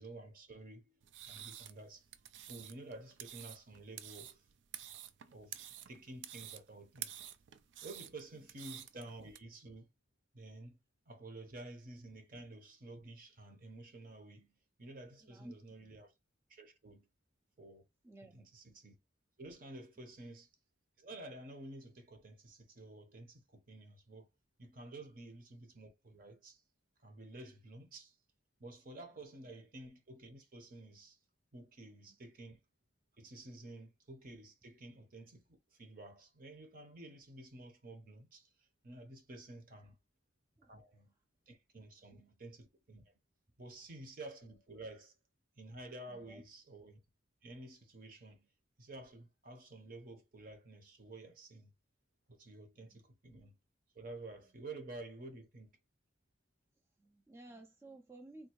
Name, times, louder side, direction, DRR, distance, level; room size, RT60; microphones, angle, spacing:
voice 1, 0.0-2.1 2.5-4.4 5.3-7.2 7.8-9.9 10.3-10.8 11.1-16.1 16.5-17.1 17.6-17.9 18.3-18.9 19.4-20.5 21.0-24.3 24.6-26.6 27.0-28.2 28.6-31.2 31.5-32.6 33.2-40.0 40.6-41.1 41.5-43.0 43.6-45.2 45.6-47.0 47.4-48.5 48.8-51.7 52.3-53.6 53.9-55.7, right 2 dB, 50° right, 0.8 m, -51 dB
sound 1, 1.0-9.4, right 11 dB, 80° right, 0.4 m, -50 dB
voice 2, 15.2-15.5 18.0-18.5 32.1-32.2 40.6-40.8 46.1-46.4 52.7-53.0 57.0-58.5, right 1 dB, 15° right, 0.4 m, -55 dB
3.6 x 2.6 x 2.9 m
head